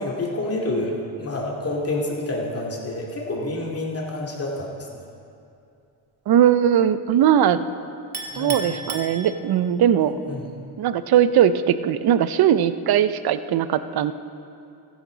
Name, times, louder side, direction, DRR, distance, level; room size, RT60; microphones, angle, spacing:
voice 1, 0.0-4.9 8.3-8.6 10.0-10.5, left 2 dB, 30° left, -2 dB, 2.5 m, -28 dB
voice 2, 6.3-7.6 8.4-10.2 10.8-14.1, right 10 dB, 55° right, 13 dB, 0.6 m, -19 dB
Chink clink, 8.1-9.8, right 3 dB, 30° right, 1.6 m, -34 dB
15.0 x 10.5 x 3.9 m, 2.6 s
cardioid pair, 90°, 46 cm